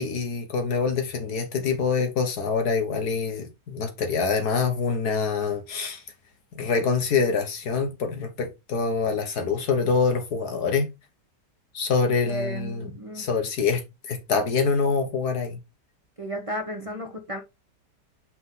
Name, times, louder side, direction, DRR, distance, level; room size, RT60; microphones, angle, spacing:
voice 1, 0.0-6.0 6.6-10.9 11.7-12.9 13.1-15.6, left 5 dB, 65° left, 1.7 m, -25 dB
voice 2, 12.3-13.3 16.2-17.4, right 1 dB, 35° right, 0.5 m, -33 dB
5.9 x 4.3 x 3.7 m
omnidirectional pair, 1.8 m